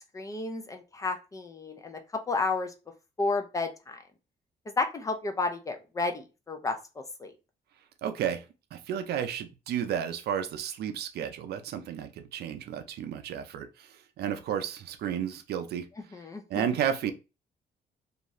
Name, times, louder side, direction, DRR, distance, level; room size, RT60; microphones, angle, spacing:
voice 1, 0.1-2.0 2.3-2.7 3.2-4.0 4.8-7.3 16.1-16.7, left 3 dB, 20° left, 5 dB, 0.3 m, -32 dB
voice 2, 8.0-8.4 8.7-15.9 16.5-17.1, right 9 dB, 75° right, 8 dB, 0.5 m, -32 dB
2.6 x 2.4 x 3.0 m, 0.29 s
cardioid pair, 175°, 17 cm